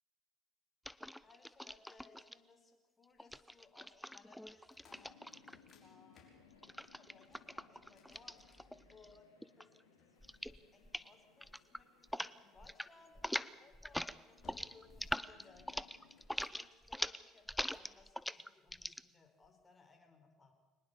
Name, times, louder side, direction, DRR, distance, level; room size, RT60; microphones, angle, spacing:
sound 1, 0.8-2.3 3.2-5.7 6.6-9.2 9.4-9.8 10.2-10.6 10.8-11.1 11.4-12.3 12.6-12.9 13.1-19.0, equal, 5° left, 0.8 m, -43 dB
voice 1, 1.2-5.1 5.7-8.6 8.9-9.2 9.6-20.5, left 4 dB, 25° left, 5 dB, 5.0 m, -64 dB
sound 2, 4.6-9.2 10.0-11.3 13.0-13.3 13.8-14.1 14.4-15.0 15.3-16.9 17.4-17.9, left 4 dB, 40° left, 6.3 m, -67 dB
sound 3, 4.9-16.2, left 6 dB, 85° left, 3.0 m, -67 dB
23.0 x 20.0 x 7.0 m, 1.2 s
hypercardioid pair, 60°, 0 cm